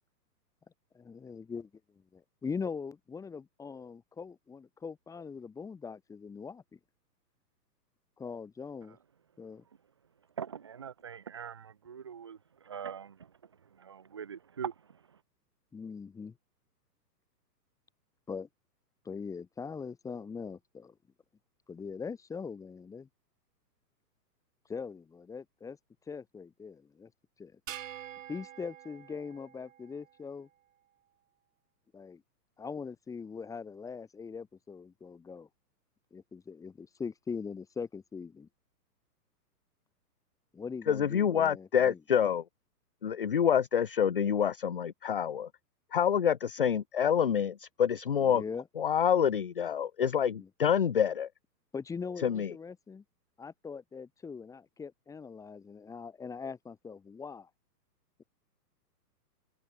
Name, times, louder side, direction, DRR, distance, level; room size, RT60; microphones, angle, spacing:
voice 1, 0.9-1.7 1.9-6.8 8.2-9.0 9.4-9.6 15.7-16.4 18.3-18.5 19.0-20.9 21.7-23.1 24.7-25.8 26.1-27.1 27.4-27.6 28.3-30.5 31.9-32.2 32.6-35.5 36.1-38.5 40.5-42.0 48.2-48.6 50.4-50.5 51.7-53.0 53.4-57.5, left 5 dB, 5° left, 7.8 m, -41 dB
voice 2, 10.4-13.2 13.8-14.7, right 8 dB, 15° right, 0.6 m, -42 dB
sound 1, 27.7-30.2, right 10 dB, 50° right, 7.7 m, -46 dB
voice 3, 40.9-42.4 43.0-45.5 45.9-48.4 48.8-51.3 52.2-52.5, left 8 dB, 35° left, 0.5 m, -27 dB
hypercardioid pair, 175°, 50 cm